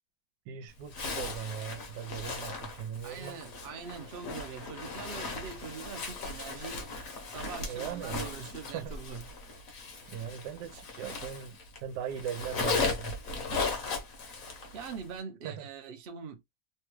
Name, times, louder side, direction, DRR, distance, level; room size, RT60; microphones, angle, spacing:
voice 1, 0.5-3.4 7.6-8.2 8.7-8.9 10.1-13.1 15.4-15.7, right 8 dB, 90° right, 1.3 m, -39 dB
Zipper (clothing), 0.9-11.8 12.1-15.0, left 4 dB, 55° left, 1.2 m, -37 dB
voice 2, 3.0-6.9 7.3-9.2 14.7-16.4, right 6 dB, 55° right, 0.6 m, -43 dB
3.3 x 2.3 x 3.0 m
omnidirectional pair, 1.8 m